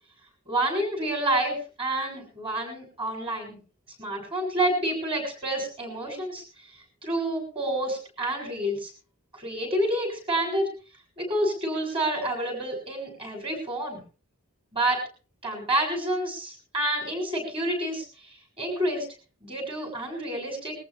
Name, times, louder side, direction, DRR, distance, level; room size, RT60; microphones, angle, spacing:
voice 1, 0.5-3.6 4.0-8.9 9.3-10.7 11.2-14.0 14.7-15.0 15.4-19.1 19.4-20.7, right 1 dB, 25° right, 1 dB, 7.4 m, -29 dB
22.0 x 14.5 x 3.6 m, 0.37 s
head